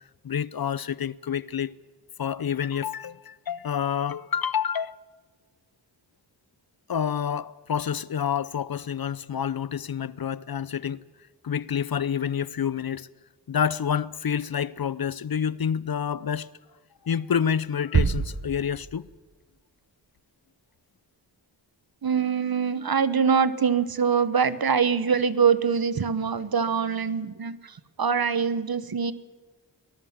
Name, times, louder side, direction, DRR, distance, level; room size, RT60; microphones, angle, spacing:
voice 1, 0.2-1.7 2.2-4.9 6.9-11.0 11.4-13.1 13.5-16.5 17.0-19.1, left 8 dB, 55° left, 0.7 m, -28 dB
sound 1, 17.9-19.3, right 5 dB, 35° right, 0.9 m, -26 dB
voice 2, 22.0-29.1, right 6 dB, 55° right, 1.2 m, -24 dB
23.5 x 19.5 x 7.4 m
wide cardioid pair, 75°, 45 cm